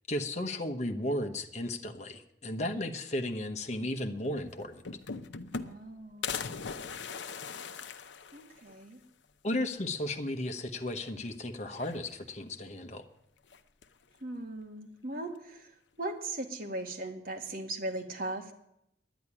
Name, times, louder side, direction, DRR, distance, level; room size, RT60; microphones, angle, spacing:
voice 1, 0.1-4.8 9.4-13.1, left 1 dB, 40° left, 5 dB, 1.1 m, -34 dB
sound 1, 4.3-4.4 4.6-5.9 6.2-8.8 9.2-9.3 9.6-9.7 10.9-11.3 11.7-12.4 13.5-14.0, left 5 dB, 85° left, 0.8 m, -40 dB
voice 2, 5.5-6.4 8.3-9.0 14.2-15.7 16.0-18.5, right 2 dB, 55° right, 3 dB, 2.1 m, -38 dB
10.5 x 10.0 x 9.7 m, 0.79 s
head